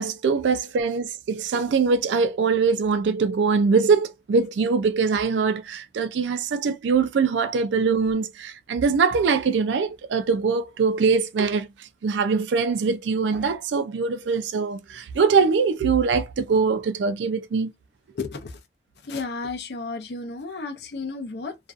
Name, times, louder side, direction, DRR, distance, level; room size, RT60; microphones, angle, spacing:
voice 1, 0.0-11.7 12.0-17.7, right 5 dB, 85° right, 0.4 m, -22 dB
voice 2, 18.1-18.6 19.0-21.6, left 4 dB, 65° left, 0.6 m, -33 dB
2.5 x 2.3 x 2.3 m
head